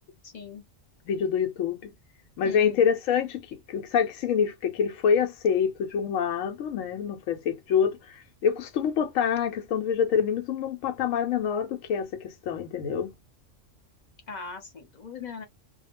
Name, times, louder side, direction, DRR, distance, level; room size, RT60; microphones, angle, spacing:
voice 1, 0.2-0.7 2.4-2.8 14.3-15.5, left 5 dB, 40° left, 0.9 m, -39 dB
voice 2, 1.1-1.9 2.4-13.1, left 7 dB, 85° left, 0.9 m, -26 dB
2.2 x 2.2 x 2.9 m
omnidirectional pair, 1.3 m